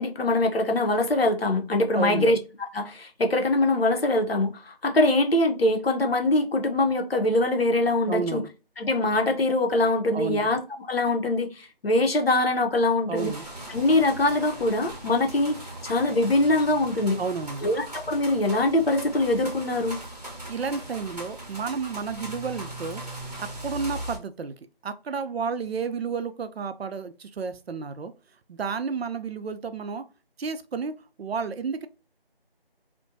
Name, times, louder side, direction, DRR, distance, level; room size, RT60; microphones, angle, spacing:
voice 1, 0.0-2.4 2.7-8.4 8.8-10.6 10.9-13.3 13.7-17.2 17.6-20.0, left 2 dB, 75° left, 4 dB, 0.8 m, -23 dB
voice 2, 1.9-2.3 8.1-8.5 10.1-10.5 13.1-13.4 17.2-17.7 20.5-23.0 23.4-24.5 24.8-28.1 28.5-30.0 30.4-31.9, right 5 dB, 85° right, 10 dB, 0.5 m, -31 dB
sound 1, 13.2-24.2, right 1 dB, 40° right, 0.8 m, -39 dB
2.6 x 2.1 x 2.6 m, 0.32 s
figure-of-eight pair, 180°, 30 cm